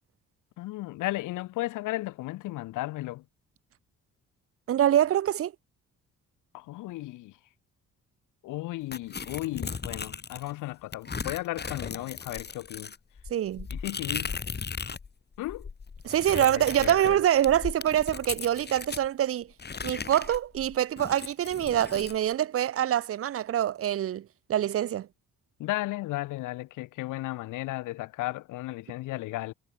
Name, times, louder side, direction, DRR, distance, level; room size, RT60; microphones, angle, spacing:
voice 1, 0.6-3.2 6.5-7.3 8.4-12.9 13.7-14.4 15.4-15.7 16.4-17.2 25.6-29.5, left 18 dB, 85° left, 0.8 m, -35 dB
voice 2, 4.7-5.5 13.3-13.7 16.0-19.5 19.8-25.1, right 11 dB, 50° right, 0.6 m, -25 dB
sound 1, 8.9-10.5 10.9-15.1 15.4-19.1 19.6-22.2, left 5 dB, 35° left, 3.4 m, -37 dB
cardioid pair, 90°, 30 cm